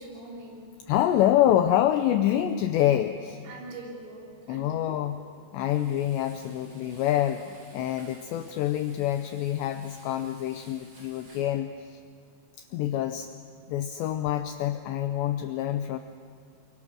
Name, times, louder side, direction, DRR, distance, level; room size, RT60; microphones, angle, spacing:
voice 1, 0.0-0.7 3.4-5.1, right 2 dB, 80° right, -2 dB, 5.9 m, -43 dB
voice 2, 0.9-3.4 4.5-5.2 5.5-12.0 12.6-13.3 13.7-16.0, left 12 dB, 90° left, 8 dB, 2.4 m, -26 dB
Frying (food), 5.6-11.5, right 2 dB, 30° right, 5.9 m, -55 dB
28.5 x 24.0 x 6.2 m, 2.2 s
omnidirectional pair, 6.0 m